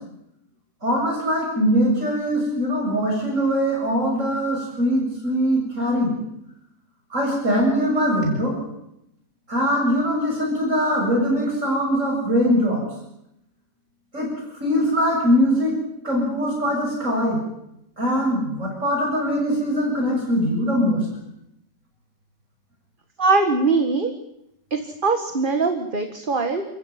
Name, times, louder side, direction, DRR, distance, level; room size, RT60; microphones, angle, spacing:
voice 1, 0.8-6.1 7.1-8.6 9.5-12.8 14.1-14.3 14.6-15.7 16.0-17.4 18.0-21.0, equal, 45° right, -1 dB, 7.7 m, -21 dB
voice 2, 23.2-24.1 24.7-26.6, right 3 dB, 30° right, 6 dB, 1.9 m, -21 dB
30.0 x 14.5 x 9.4 m, 0.81 s
omnidirectional pair, 1.8 m